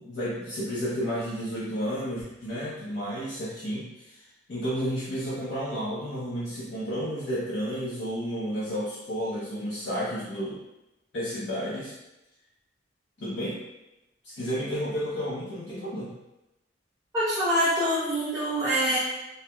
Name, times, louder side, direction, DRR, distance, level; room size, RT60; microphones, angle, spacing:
voice 1, 0.0-10.6 11.1-11.9 13.2-13.6 14.2-16.2, equal, 65° left, -9 dB, 0.6 m, -32 dB
voice 2, 17.1-19.0, equal, 15° right, -13 dB, 0.6 m, -25 dB
4.2 x 2.0 x 2.2 m, 0.97 s
head